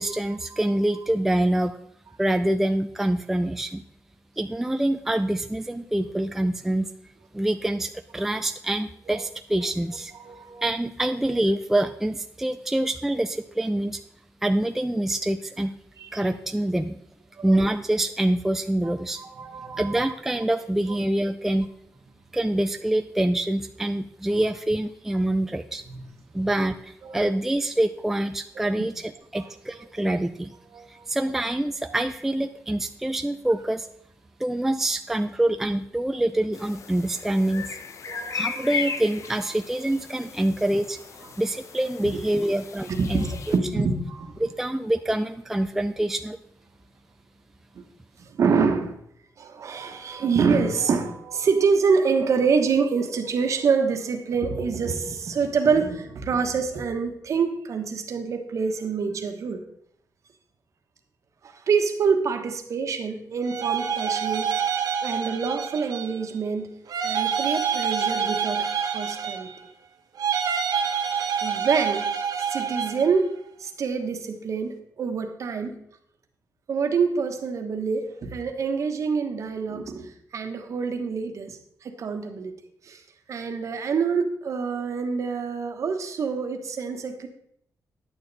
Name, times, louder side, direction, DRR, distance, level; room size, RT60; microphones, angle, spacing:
voice 1, 0.0-1.7 2.2-3.8 4.4-6.9 7.3-10.1 10.6-14.0 14.4-15.7 16.1-17.0 17.4-19.2 19.8-21.7 22.3-25.8 26.3-30.5 30.9-33.9 34.4-37.8 38.3-41.0 41.4-43.9 44.4-46.4, right 1 dB, 5° right, 7 dB, 0.3 m, -25 dB
voice 2, 10.2-10.6 16.0-16.1 17.4-17.5 18.8-20.1 25.9-26.0 27.0-27.2 29.4-29.5 30.0-30.1 30.7-31.0 37.5-37.6 38.1-38.7 42.0-42.1 42.9-44.3 47.7-47.8 48.2-49.0 49.4-59.6 61.4-64.5 65.0-66.7 67.0-69.5 70.8-71.1 71.4-72.1 72.5-75.8 76.7-82.5 82.8-83.0 83.3-87.3, right 5 dB, 55° right, 5 dB, 1.2 m, -26 dB
sound 1, 36.5-43.6, left 6 dB, 55° left, 0.7 m, -36 dB
sound 2, 63.4-66.3 66.9-69.7 70.2-73.1, right 7 dB, 85° right, 1.0 m, -27 dB
10.5 x 8.8 x 4.1 m, 0.71 s
wide cardioid pair, 175°, 6 cm